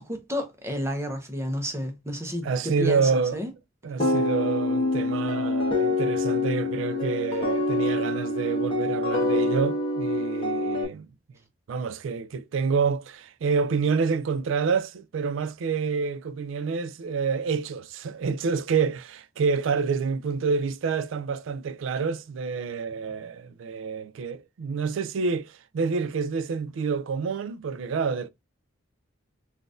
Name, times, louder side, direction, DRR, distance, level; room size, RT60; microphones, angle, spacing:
voice 1, 0.0-3.0 3.3-3.5 4.0-4.2, equal, 15° right, 0.8 m, -31 dB
voice 2, 2.4-3.4 3.8-11.1 11.7-28.3, right 5 dB, 70° right, 0.3 m, -28 dB
sound 1, 4.0-10.8, left 2 dB, 30° left, 1.2 m, -26 dB
3.8 x 2.5 x 2.4 m
head